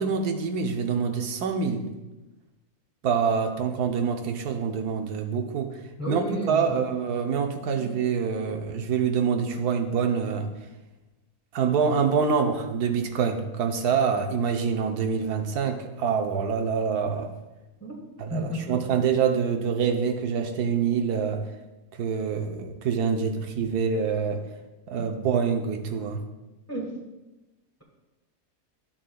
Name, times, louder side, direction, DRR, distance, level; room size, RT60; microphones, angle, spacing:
voice 1, 0.0-1.9 3.0-5.7 6.1-10.5 11.5-17.3 18.2-21.4 22.0-24.4 24.9-26.2, right 6 dB, 85° right, 4 dB, 1.3 m, -26 dB
voice 2, 6.0-6.8 7.8-7.9 17.8-18.0 18.3-18.8 24.9-25.1 26.7-27.0, equal, 10° left, -1 dB, 1.1 m, -32 dB
12.0 x 7.6 x 2.3 m, 1.1 s
omnidirectional pair, 1.6 m